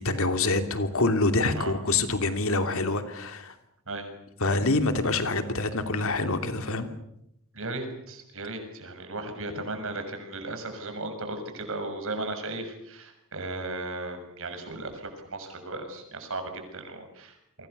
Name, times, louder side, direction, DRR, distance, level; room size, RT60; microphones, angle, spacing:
voice 1, 0.0-3.5 4.4-6.9, left 2 dB, 70° left, 7 dB, 2.9 m, -26 dB
voice 2, 7.5-17.7, right 2 dB, 65° right, 6 dB, 6.6 m, -36 dB
30.0 x 24.0 x 6.9 m, 0.79 s
head